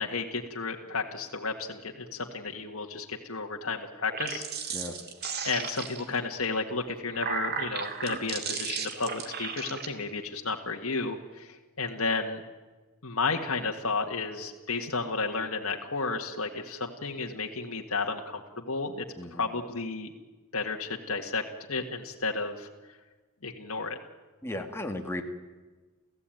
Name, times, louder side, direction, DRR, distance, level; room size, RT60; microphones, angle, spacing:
voice 1, 0.0-4.8 5.4-12.4 13.0-19.0 19.3-20.1 20.5-21.4 21.7-22.7 23.4-24.0, left 4 dB, 70° left, 1 dB, 1.9 m, -32 dB
sound 1, 4.0-6.2 6.9-9.9, right 6 dB, 45° right, 2.3 m, -35 dB
voice 2, 19.2-19.5 24.4-25.2, left 1 dB, 10° left, 3 dB, 2.0 m, -35 dB
29.0 x 15.5 x 9.2 m, 1.3 s
head